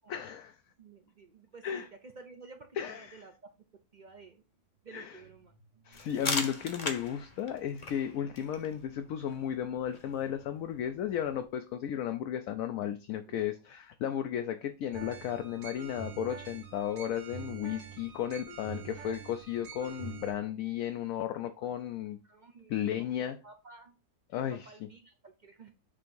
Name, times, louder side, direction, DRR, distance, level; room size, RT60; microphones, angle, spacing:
voice 1, 0.1-0.6 1.6-1.9 2.8-3.2 4.9-5.1 5.9-22.2 22.7-23.4 24.3-24.6, left 10 dB, 70° left, 0.9 m, -34 dB
voice 2, 0.8-3.3 3.9-4.4 4.8-6.4 13.3-13.5 18.5-19.9 21.6-21.9 22.2-24.0 24.3-25.7, right 4 dB, 55° right, 0.5 m, -53 dB
sound 1, 5.9-11.4, left 3 dB, 30° left, 0.9 m, -40 dB
sound 2, 14.9-20.3, right 6 dB, 80° right, 1.8 m, -45 dB
6.8 x 2.8 x 5.3 m
omnidirectional pair, 1.6 m